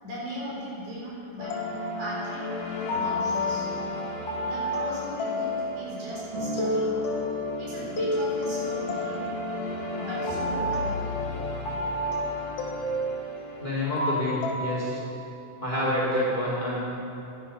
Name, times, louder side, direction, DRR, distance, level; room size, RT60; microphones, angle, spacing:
voice 1, 0.0-1.6 2.0-2.5 2.8-3.7 4.4-7.2 7.6-9.3 9.9-11.0, equal, 80° right, -6 dB, 5.8 m, -37 dB
sound 1, 1.4-14.5, left 1 dB, 65° left, 3.1 m, -30 dB
Acoustic guitar, 6.3-10.6 11.5-11.6, equal, 65° right, 5.1 m, -37 dB
voice 2, 6.8-7.3 13.6-15.0 15.6-16.8, left 1 dB, 15° left, -6 dB, 2.7 m, -28 dB
15.5 x 11.0 x 5.6 m, 2.9 s
omnidirectional pair, 3.7 m